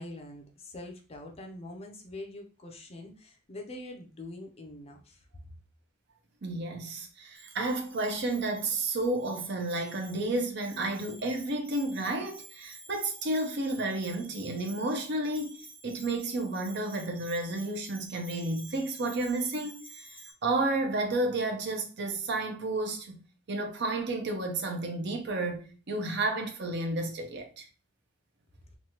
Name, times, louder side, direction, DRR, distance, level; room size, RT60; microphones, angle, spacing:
voice 1, 0.0-5.2, left 1 dB, 30° left, 0.5 m, -44 dB
voice 2, 6.4-23.2 23.5-27.7, right 2 dB, 60° right, 0.6 m, -31 dB
Bell, 7.3-20.3, right 3 dB, 25° right, 1.1 m, -51 dB
3.1 x 2.2 x 2.8 m
head